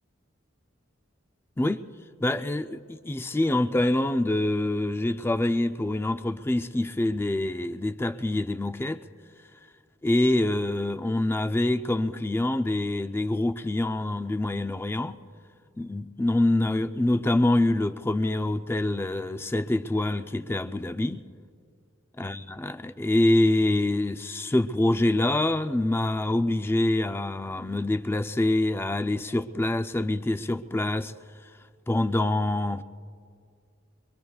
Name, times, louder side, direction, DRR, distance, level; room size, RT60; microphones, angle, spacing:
voice 1, 2.2-9.0 10.0-15.2 15.8-21.2 22.2-31.1 31.9-32.8, left 1 dB, 10° left, 0.4 m, -25 dB
24.0 x 23.0 x 2.3 m
head